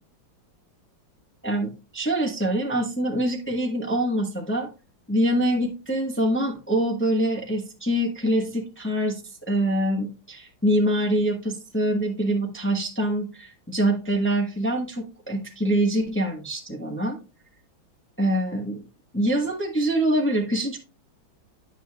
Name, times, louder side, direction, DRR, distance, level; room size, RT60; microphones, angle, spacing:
voice 1, 1.4-4.7 5.1-17.2 18.2-18.8 19.1-20.8, right 1 dB, 10° left, 1 dB, 0.7 m, -25 dB
10.0 x 6.0 x 2.2 m, 0.32 s
omnidirectional pair, 2.3 m